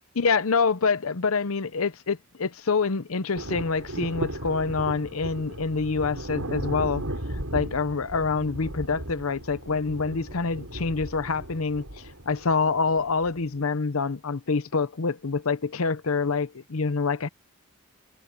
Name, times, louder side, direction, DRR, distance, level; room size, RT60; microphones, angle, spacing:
voice 1, 0.2-7.0 7.3-11.9 12.3-17.3, left 4 dB, 80° left, 0.8 m, -26 dB
sound 1, 3.4-13.6, right 1 dB, 85° right, 5.7 m, -36 dB
head